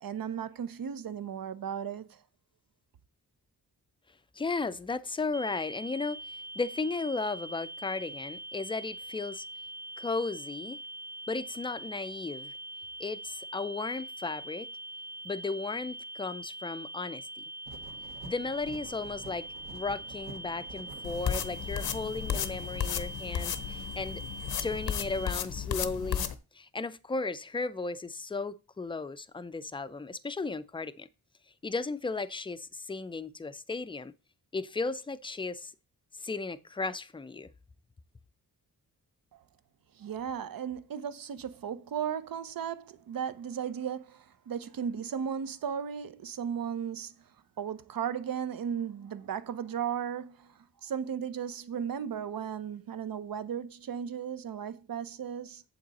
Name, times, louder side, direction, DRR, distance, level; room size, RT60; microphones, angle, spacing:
voice 1, 0.0-2.2 39.3-39.4 40.0-47.1 47.6-55.6, right 8 dB, 70° right, 0.8 m, -36 dB
voice 2, 4.3-9.5 10.0-10.8 11.3-12.5 13.0-14.7 15.2-17.4 18.2-19.5 19.7-24.2 24.6-26.3 26.5-31.1 31.6-34.1 34.5-35.7 36.2-37.5, left 3 dB, 15° left, 0.4 m, -35 dB
sound 1, 5.3-25.3, right 1 dB, 45° right, 1.2 m, -43 dB
sound 2, 17.7-22.9, right 4 dB, 90° right, 2.2 m, -48 dB
sound 3, 21.0-26.3, left 8 dB, 80° left, 0.8 m, -34 dB
8.6 x 7.4 x 4.1 m
wide cardioid pair, 140°, 36 cm